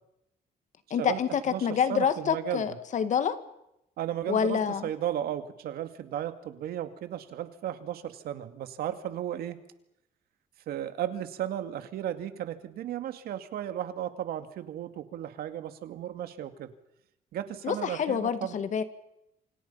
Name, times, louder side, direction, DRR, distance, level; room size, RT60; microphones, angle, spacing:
voice 1, 0.9-3.4 4.3-4.9 17.6-18.8, left 7 dB, 50° left, 11 dB, 2.0 m, -27 dB
voice 2, 1.5-2.7 4.0-9.6 10.7-16.7 17.3-18.6, right 11 dB, 80° right, 9 dB, 2.2 m, -35 dB
28.0 x 26.5 x 5.6 m, 0.85 s
cardioid pair, 135°, 16 cm